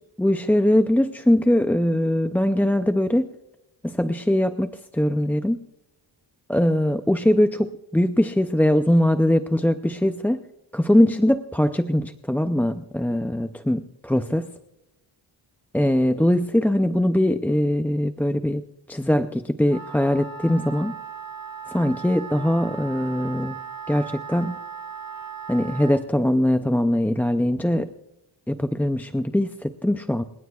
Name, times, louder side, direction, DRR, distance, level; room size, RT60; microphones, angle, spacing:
voice 1, 0.2-3.3 3.8-5.6 6.5-10.4 10.7-14.5 15.7-18.6 18.9-21.0 21.7-23.6 23.9-24.6 25.5-27.9 28.5-30.2, left 1 dB, 5° left, 8 dB, 0.4 m, -21 dB
Wind instrument woodwind instrument, 19.7-26.0, right 6 dB, 50° right, 2.5 m, -37 dB
28.5 x 17.0 x 2.3 m, 0.94 s
wide cardioid pair, 120°, 46 cm